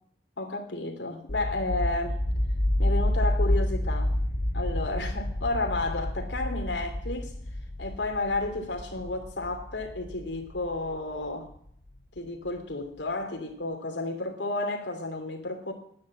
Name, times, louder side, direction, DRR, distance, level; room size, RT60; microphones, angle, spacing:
voice 1, 0.4-2.2 2.8-4.1 4.5-7.3 7.8-11.5 12.1-15.7, left 2 dB, 85° left, 3.0 m, -32 dB
sound 1, 1.3-12.0, left 1 dB, 50° left, 1.1 m, -29 dB
10.5 x 9.8 x 7.5 m
head